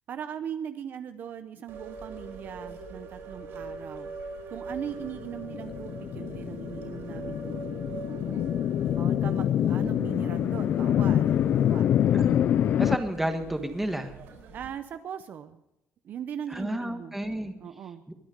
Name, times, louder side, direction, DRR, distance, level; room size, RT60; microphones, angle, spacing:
voice 1, 0.1-4.2 4.5-8.5 8.9-12.0 14.5-15.6 16.0-17.2 17.6-18.0, right 8 dB, 45° right, 10 dB, 0.7 m, -39 dB
sound 1, 1.7-14.7, right 3 dB, 65° right, 4.7 m, -43 dB
sound 2, 5.2-13.0, left 10 dB, 50° left, 0.5 m, -26 dB
voice 2, 12.8-14.1 16.5-17.5 18.1-18.2, right 1 dB, 5° right, 6 dB, 1.4 m, -31 dB
22.0 x 9.5 x 5.2 m, 0.88 s
cardioid pair, 160°, 4 cm